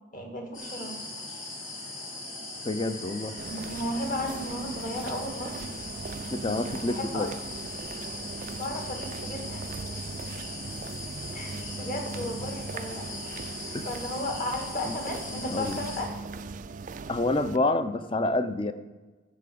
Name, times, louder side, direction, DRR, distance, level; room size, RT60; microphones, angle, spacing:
voice 1, 0.1-1.0 3.5-5.7 6.8-7.3 8.5-9.7 11.3-13.1 13.9-16.1, left 1 dB, 40° left, 3 dB, 1.7 m, -34 dB
sound 1, 0.5-16.0, left 2 dB, 65° left, 3.7 m, -40 dB
voice 2, 2.6-3.3 6.3-7.3 13.7-13.9 14.9-15.0 15.3-15.9 17.1-18.7, left 2 dB, 25° left, 11 dB, 0.5 m, -28 dB
sound 2, 3.4-17.6, right 4 dB, 35° right, 0.3 m, -39 dB
10.5 x 7.5 x 6.9 m, 1.3 s
head